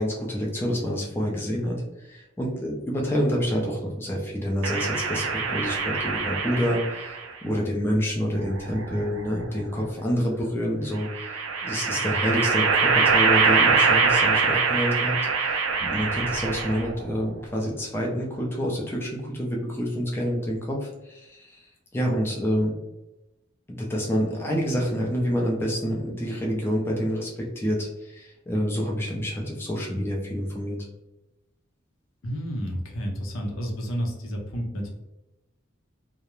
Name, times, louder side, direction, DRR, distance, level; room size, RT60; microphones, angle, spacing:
voice 1, 0.0-22.7 23.7-30.8, equal, 10° left, -2 dB, 0.4 m, -28 dB
sound 1, 4.6-7.3 8.4-9.4 11.0-17.0, right 5 dB, 80° right, 0.4 m, -24 dB
voice 2, 32.2-34.9, equal, 85° left, 0 dB, 0.6 m, -31 dB
2.3 x 2.0 x 3.0 m, 0.97 s
head